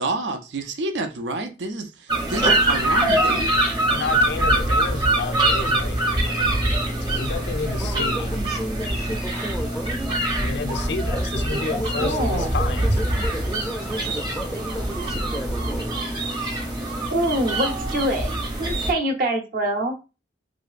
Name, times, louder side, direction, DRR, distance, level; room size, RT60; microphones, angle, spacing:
voice 1, 0.0-3.5, right 2 dB, 90° right, 0.5 m, -29 dB
sound 1, 2.1-18.9, right 1 dB, 25° right, 0.7 m, -24 dB
voice 2, 3.9-6.6 7.1-8.4 10.4-13.0, left 4 dB, 70° left, 0.4 m, -31 dB
voice 3, 7.3-10.2 11.1-16.0, equal, 5° left, 0.5 m, -33 dB
voice 4, 11.9-12.5 17.1-18.3 18.6-19.9, right 1 dB, 55° right, 0.7 m, -24 dB
3.0 x 2.6 x 2.4 m
head